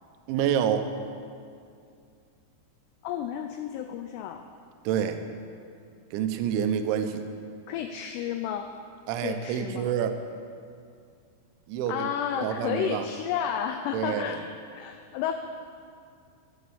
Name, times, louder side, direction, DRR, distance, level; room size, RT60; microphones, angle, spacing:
voice 1, 0.3-0.9 4.8-5.2 6.1-7.3 9.1-10.2 11.7-12.1 12.4-13.1 13.9-14.4, right 9 dB, 85° right, 8 dB, 3.1 m, -27 dB
voice 2, 3.0-4.4 7.7-8.7 9.2-9.9 11.9-14.4 14.8-15.3, left 9 dB, 85° left, 7 dB, 2.4 m, -31 dB
11.5 x 8.4 x 7.0 m, 2.3 s
omnidirectional pair, 5.3 m